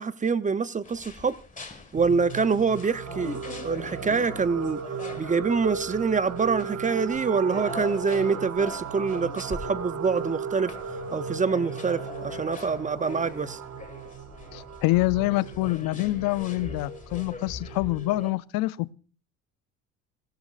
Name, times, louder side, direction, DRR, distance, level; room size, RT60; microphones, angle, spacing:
voice 1, 0.0-1.3 1.9-4.8 5.2-10.7 11.1-13.6, right 5 dB, 20° right, 0.6 m, -26 dB
sound 1, 0.8-18.3, left 4 dB, 20° left, 1.7 m, -42 dB
sound 2, 1.9-18.3, right 6 dB, 45° right, 1.0 m, -37 dB
voice 2, 14.5-18.9, left 20 dB, 70° left, 0.5 m, -26 dB
17.0 x 15.0 x 2.4 m
supercardioid pair, 70°, 36 cm